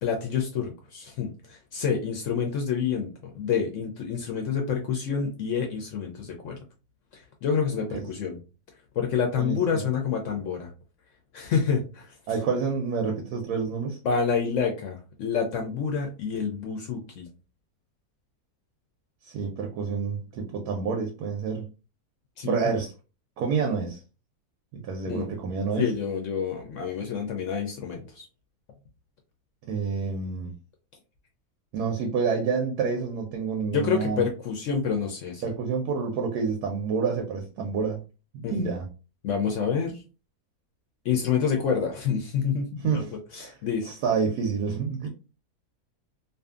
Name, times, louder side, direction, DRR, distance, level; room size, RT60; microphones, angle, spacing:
voice 1, 0.0-6.6 7.1-8.4 8.9-10.7 11.3-12.1 14.0-17.3 22.4-22.6 25.1-25.3 25.8-28.3 33.7-35.4 38.4-38.7 39.2-40.0 41.0-43.9, left 6 dB, 70° left, 0.8 m, -28 dB
voice 2, 9.4-9.9 12.3-14.0 19.2-21.7 22.4-22.9 23.4-24.0 24.7-25.9 29.7-30.5 31.7-34.2 35.4-38.0 38.5-38.9 42.8-43.1 43.4-43.5 43.8-45.1, right 5 dB, 85° right, 1.1 m, -28 dB
2.6 x 2.5 x 2.3 m
omnidirectional pair, 1.6 m